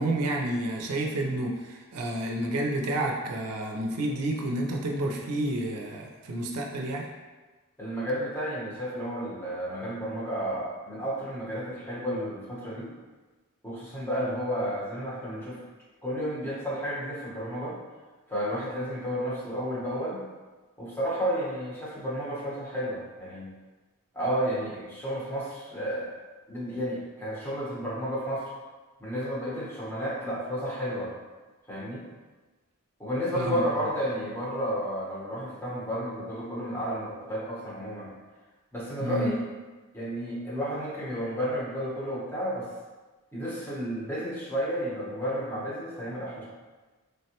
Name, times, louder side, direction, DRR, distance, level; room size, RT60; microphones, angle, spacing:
voice 1, 0.0-7.1 33.3-33.6 39.0-39.3, right 1 dB, 80° right, 0 dB, 0.4 m, -30 dB
voice 2, 7.8-12.9 13.6-15.6 16.0-17.7 18.3-20.2 20.8-23.5 24.1-26.1 26.5-28.5 29.0-31.1 31.7-32.0 33.0-38.1 38.7-39.4 39.9-42.7 43.3-46.4, equal, 10° left, -8 dB, 0.8 m, -32 dB
3.4 x 2.1 x 2.8 m, 1.3 s
head